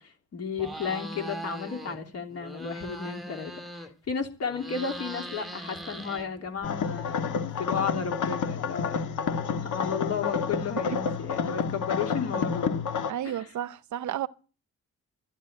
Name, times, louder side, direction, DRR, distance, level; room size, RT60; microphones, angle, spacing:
voice 1, 0.0-9.0 9.3-12.8 13.2-13.4, left 6 dB, 50° left, 3.2 m, -33 dB
sound 1, 0.6-2.0 2.3-4.1 4.4-6.7, equal, ahead, 1.9 m, -40 dB
sound 2, 6.6-13.1, left 6 dB, 70° left, 1.5 m, -29 dB
voice 2, 13.1-14.3, right 11 dB, 65° right, 0.7 m, -32 dB
12.5 x 12.0 x 8.9 m
cardioid pair, 175°, 32 cm